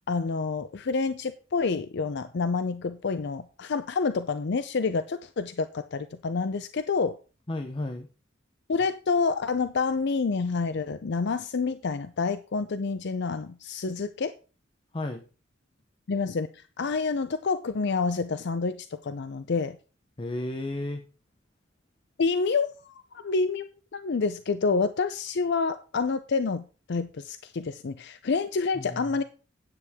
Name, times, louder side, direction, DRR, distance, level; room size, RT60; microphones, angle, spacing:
voice 1, 0.1-7.2 8.7-14.3 16.1-16.5 16.8-18.8 19.0-19.8 22.2-22.9 23.2-29.2, left 4 dB, 60° left, 0.5 m, -28 dB
voice 2, 7.5-8.1 14.9-15.2 20.2-21.0 28.7-29.2, left 1 dB, 25° left, 0.8 m, -33 dB
9.9 x 8.4 x 3.6 m
head